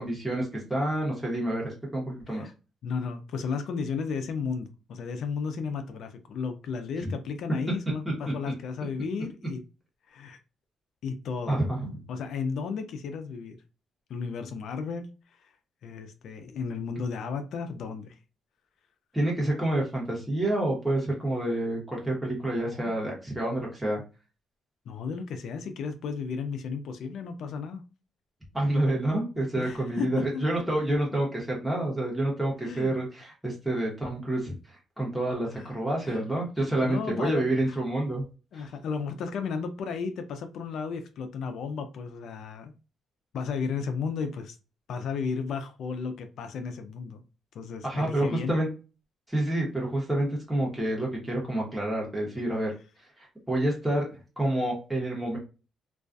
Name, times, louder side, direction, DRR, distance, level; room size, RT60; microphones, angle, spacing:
voice 1, 0.0-2.4 7.0-7.1 8.2-8.3 11.5-11.9 19.1-24.0 28.5-38.2 38.5-38.6 47.8-48.7 49.3-52.7 53.2-54.1 54.4-55.4, right 1 dB, 5° right, 0.9 m, -28 dB
voice 2, 2.8-9.6 10.1-10.4 11.0-11.6 12.1-13.6 14.1-15.1 15.8-18.2 22.6-22.9 24.9-27.8 29.6-30.5 32.6-32.9 35.5-35.7 36.0-36.2 36.6-37.8 38.5-42.7 43.3-44.6 44.9-47.2 47.5-48.5, left 5 dB, 70° left, 0.4 m, -34 dB
2.3 x 2.2 x 2.5 m
cardioid pair, 90°, 0 cm